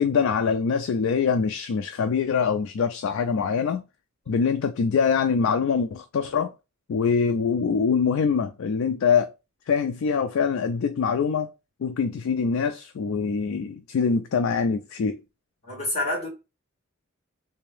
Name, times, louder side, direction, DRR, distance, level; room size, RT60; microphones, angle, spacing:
voice 1, 0.0-3.8 4.3-6.5 6.9-9.3 9.7-11.5 11.8-15.2, left 6 dB, 70° left, 0.3 m, -24 dB
voice 2, 15.6-16.3, left 2 dB, 30° left, 2.2 m, -27 dB
3.4 x 2.6 x 3.3 m
head